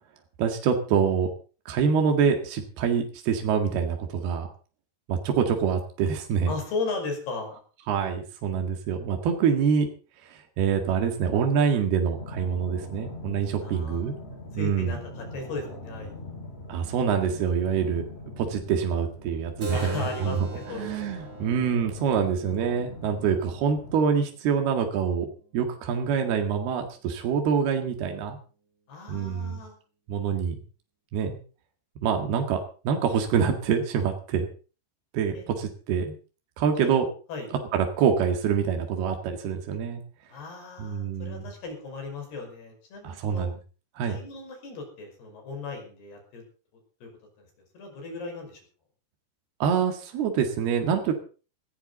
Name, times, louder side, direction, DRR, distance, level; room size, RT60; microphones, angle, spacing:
voice 1, 0.4-1.3 1.7-4.5 5.1-6.5 7.9-9.9 10.3-14.1 14.6-15.0 16.7-18.1 18.4-25.3 25.5-28.4 29.1-29.6 30.1-30.6 31.1-31.4 32.0-32.6 32.9-34.5 35.1-36.2 36.6-37.1 37.7-40.0 40.8-41.5 43.0-43.5 44.0-44.2 49.6-51.1, right 7 dB, 80° right, 4 dB, 3.9 m, -25 dB
voice 2, 6.5-7.6 13.6-14.0 14.5-16.3 19.7-21.1 28.9-29.7 35.3-35.4 36.8-36.9 37.3-37.5 40.3-43.4 44.0-46.4 47.0-47.1 47.4-47.5 47.7-48.6, left 3 dB, 85° left, 3 dB, 7.6 m, -36 dB
sound 1, 12.2-24.0, left 1 dB, 20° left, 1.8 m, -43 dB
Keyboard (musical), 19.6-24.7, right 2 dB, 30° right, 1.5 m, -40 dB
18.5 x 16.0 x 4.0 m, 0.37 s
omnidirectional pair, 4.5 m